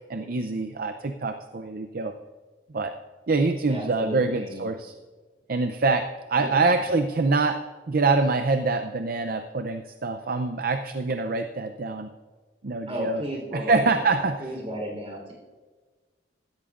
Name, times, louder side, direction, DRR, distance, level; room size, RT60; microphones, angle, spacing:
voice 1, 0.1-2.1 2.7-2.9 3.3-4.9 5.5-7.6 7.9-12.1 12.6-13.2 13.5-14.4, right 3 dB, 55° right, 8 dB, 0.5 m, -25 dB
voice 2, 3.7-4.7 6.4-7.0 12.9-15.3, equal, 35° right, -1 dB, 3.8 m, -34 dB
16.5 x 13.5 x 2.5 m, 1.4 s
head